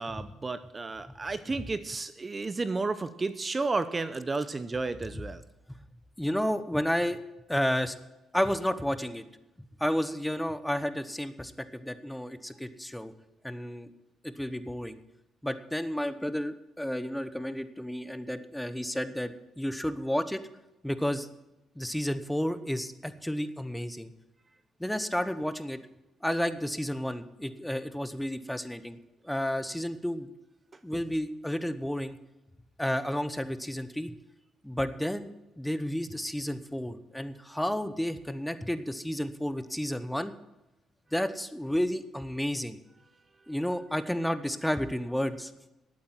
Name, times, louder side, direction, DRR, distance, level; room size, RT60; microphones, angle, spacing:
voice 1, 0.0-5.4, right 3 dB, 25° right, 13 dB, 0.6 m, -32 dB
voice 2, 6.2-7.2 7.5-7.9 8.3-9.2 9.6-13.1 13.4-13.9 14.2-15.0 15.4-20.4 20.8-21.3 21.8-24.1 24.8-25.8 26.2-29.0 29.2-30.3 30.8-32.2 32.8-34.1 34.6-40.3 41.1-42.8 43.5-45.5, equal, 5° left, 12 dB, 0.9 m, -31 dB
12.0 x 8.7 x 7.4 m, 0.98 s
cardioid pair, 90°, 0 cm